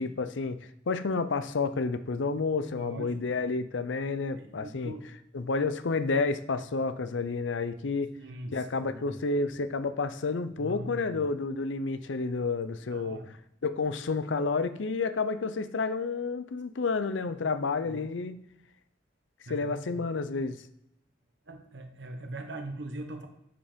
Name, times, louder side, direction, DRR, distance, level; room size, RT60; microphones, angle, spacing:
voice 1, 0.0-4.9 5.3-8.1 8.5-13.2 13.6-18.4 19.5-20.6, left 4 dB, 85° left, 12 dB, 0.6 m, -30 dB
voice 2, 2.7-3.4 4.4-5.1 8.2-9.2 10.6-11.2 12.9-13.3 17.4-17.6 17.8-18.0 19.5-20.0 21.5-23.3, right 2 dB, 70° right, 6 dB, 1.2 m, -41 dB
7.0 x 5.6 x 5.2 m, 0.80 s
head